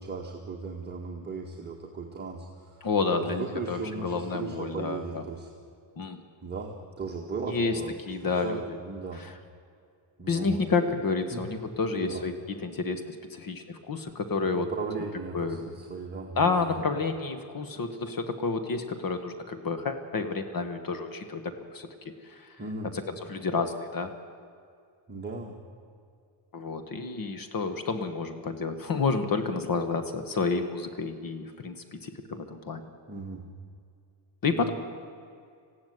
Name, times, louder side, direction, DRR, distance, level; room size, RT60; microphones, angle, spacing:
voice 1, 0.0-5.5 6.4-7.9 8.2-9.2 10.2-10.6 11.3-11.4 11.9-12.2 14.5-16.5 22.6-22.9 25.1-25.6 33.1-33.5 34.5-34.7, right 4 dB, 20° right, -2 dB, 1.7 m, -37 dB
voice 2, 2.8-5.2 6.0-6.2 7.5-8.6 9.1-9.4 10.3-14.7 15.3-15.6 16.3-21.9 22.2-24.1 26.5-32.8 34.4-34.7, left 4 dB, 45° left, 9 dB, 1.4 m, -30 dB
19.5 x 15.5 x 9.4 m, 2.3 s
wide cardioid pair, 155°, 48 cm